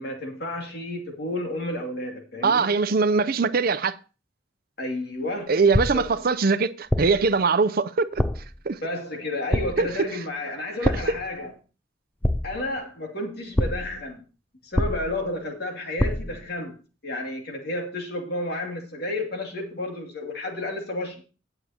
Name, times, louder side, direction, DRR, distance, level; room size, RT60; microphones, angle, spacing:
voice 1, 0.0-2.7 4.8-5.6 5.9-6.4 8.8-11.5 12.4-14.2 14.6-16.8 17.0-21.2, left 1 dB, 60° left, 2.5 m, -31 dB
voice 2, 2.4-4.0 5.5-8.1 8.7-8.8 9.8-9.9 10.8-11.2, right 4 dB, 55° right, 0.6 m, -22 dB
sound 1, 5.7-6.2 6.9-7.3 8.2-8.6 9.5-10.0 10.8-11.3 12.2-12.8 13.6-14.0 14.8-15.3 16.0-16.4, left 1 dB, 10° left, 0.5 m, -26 dB
18.0 x 6.8 x 2.9 m
head